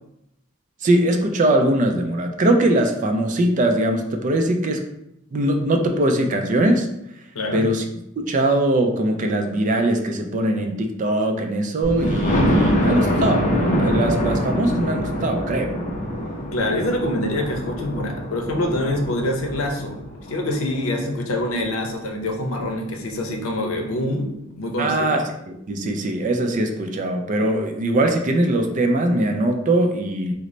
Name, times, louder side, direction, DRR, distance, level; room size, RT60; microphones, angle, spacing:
voice 1, 0.8-4.8 5.3-6.9 7.5-7.8 8.2-15.7 24.8-30.3, right 1 dB, 40° right, 4 dB, 0.4 m, -21 dB
voice 2, 7.3-7.7 16.4-20.0 20.3-25.1, left 1 dB, 85° left, 3 dB, 0.6 m, -25 dB
Thunder, 11.8-21.6 22.1-22.2 22.6-22.7 23.0-23.1, equal, 35° left, 0.5 m, -24 dB
3.9 x 2.0 x 3.1 m, 0.80 s
head